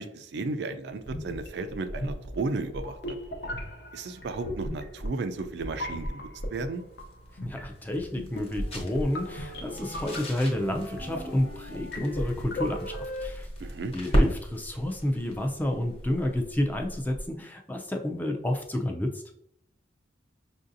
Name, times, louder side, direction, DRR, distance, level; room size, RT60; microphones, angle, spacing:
voice 1, 0.0-3.2 3.9-6.8 13.6-13.9, right 3 dB, 65° right, 8 dB, 0.4 m, -34 dB
sound 1, 1.0-13.1, equal, 65° left, 0.7 m, -37 dB
sound 2, 3.4-13.3, equal, 90° left, 1.1 m, -45 dB
sound 3, 6.7-17.4, equal, 35° left, 0.9 m, -35 dB
voice 2, 7.4-13.5 13.9-19.2, left 1 dB, 10° left, 3 dB, 0.4 m, -30 dB
5.5 x 2.6 x 2.6 m, 0.72 s
head